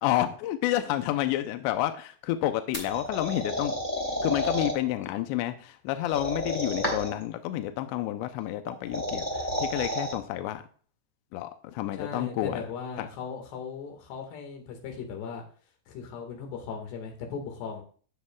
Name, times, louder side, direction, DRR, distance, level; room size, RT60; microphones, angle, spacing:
voice 1, 0.0-3.8 4.2-10.6 11.3-12.7 13.0-13.1, left 13 dB, 85° left, 8 dB, 2.5 m, -30 dB
sound 1, 2.7-4.7 6.0-7.2 8.7-10.1, left 1 dB, 20° left, 1.2 m, -31 dB
voice 2, 12.0-15.4 15.9-17.8, left 6 dB, 65° left, 3 dB, 3.6 m, -38 dB
17.5 x 6.6 x 2.3 m, 0.43 s
omnidirectional pair, 5.7 m